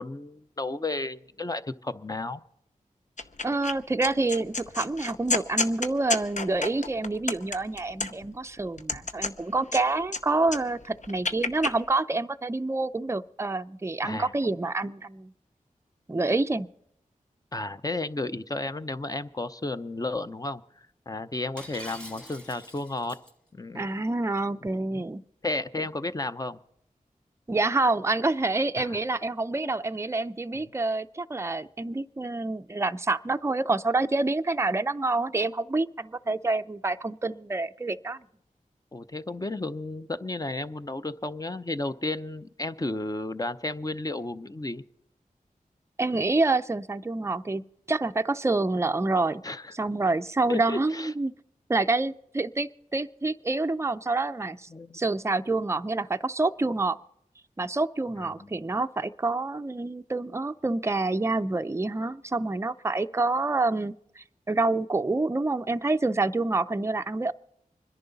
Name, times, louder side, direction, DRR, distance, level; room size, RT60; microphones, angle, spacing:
voice 1, 0.0-2.4 14.0-14.3 17.5-23.2 23.5-23.9 24.9-25.1 25.4-26.6 28.8-29.0 30.5-30.6 38.9-44.8 49.4-49.7 50.5-51.1 54.7-55.0 58.2-58.5, left 2 dB, 25° left, 11 dB, 0.7 m, -33 dB
sound 1, 3.2-3.7 4.0-8.3 8.8-10.2 10.5-11.7, left 3 dB, 55° left, 0.8 m, -30 dB
voice 2, 3.4-15.3 16.1-16.7 23.7-25.2 27.5-38.2 46.0-49.4 49.8-51.3 51.7-57.0 57.6-67.3, right 3 dB, 20° right, 10 dB, 0.5 m, -27 dB
Shatter, 21.6-23.3, equal, 5° left, 1.7 m, -44 dB
25.5 x 10.5 x 4.0 m, 0.76 s
wide cardioid pair, 50°, 14 cm